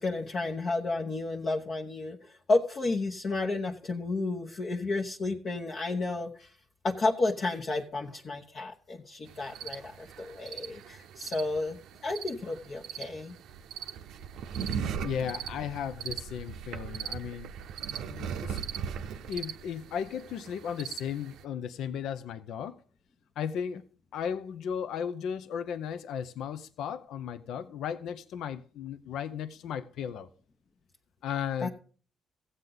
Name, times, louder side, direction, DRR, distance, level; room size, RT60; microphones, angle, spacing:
voice 1, 0.0-6.5 6.8-11.8 12.0-13.3 31.6-31.7, left 3 dB, 45° left, 1.0 m, -31 dB
sound 1, 9.3-21.4, right 8 dB, 85° right, 0.6 m, -39 dB
voice 2, 15.0-17.5 18.1-18.6 19.3-22.8 23.4-23.8 24.1-30.3 31.2-31.7, left 8 dB, 80° left, 0.6 m, -35 dB
15.0 x 8.0 x 3.9 m
cardioid pair, 90°, 0 cm